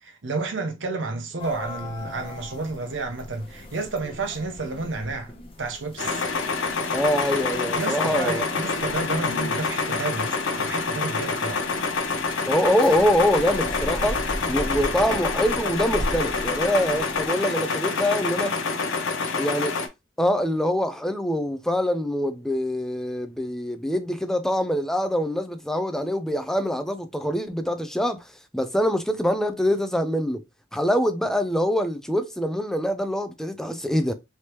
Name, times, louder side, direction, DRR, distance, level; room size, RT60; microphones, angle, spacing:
voice 1, 0.0-5.3 5.6-6.3 7.7-11.7, right 3 dB, 70° right, 0.7 m, -31 dB
sound 1, 1.4-17.3, equal, 30° left, 0.7 m, -38 dB
sound 2, 6.0-19.9, left 4 dB, 75° left, 0.6 m, -27 dB
voice 2, 6.9-8.7 12.4-14.2 14.5-18.5 19.4-19.8 20.2-28.2 28.5-30.4 30.7-34.1, equal, 5° left, 0.3 m, -24 dB
3.2 x 2.9 x 2.9 m
head